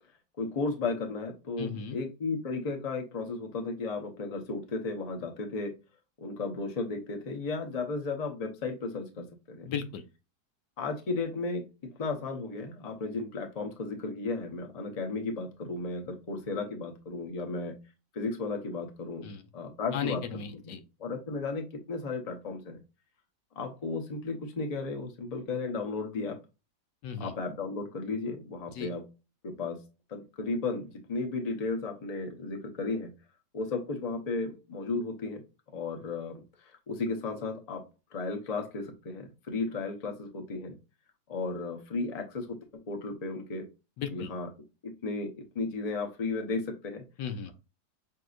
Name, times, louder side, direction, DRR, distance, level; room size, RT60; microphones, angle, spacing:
voice 1, 0.4-5.7 6.2-9.7 10.8-11.7 12.0-17.8 18.1-19.3 19.5-20.2 20.7-20.8 21.0-22.8 23.6-26.4 27.2-29.0 29.4-29.8 30.1-33.1 33.5-35.4 35.7-36.4 36.9-37.8 38.1-40.7 41.3-43.7 44.1-44.5 44.8-47.0, left 3 dB, 35° left, 3 dB, 0.7 m, -34 dB
voice 2, 1.6-2.0 9.6-10.0 19.2-19.4 19.9-20.8 27.0-27.4 28.7-28.9 44.0-44.3 47.2-47.5, left 7 dB, 90° left, 8 dB, 1.4 m, -36 dB
5.9 x 2.8 x 2.4 m, 0.29 s
omnidirectional pair, 1.8 m